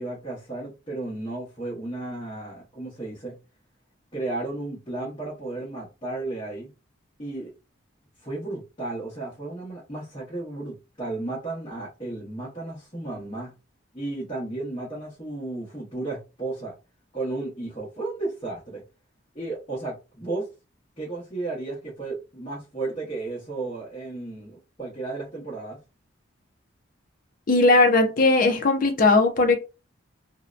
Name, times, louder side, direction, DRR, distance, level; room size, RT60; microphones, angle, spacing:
voice 1, 0.0-3.4 4.1-6.7 7.2-7.5 8.2-13.5 13.9-16.7 17.1-18.8 19.3-20.5 21.0-25.8, right 2 dB, 25° left, 0.9 m, -33 dB
voice 2, 27.5-29.6, left 3 dB, 45° left, 0.5 m, -18 dB
2.7 x 2.1 x 2.4 m
head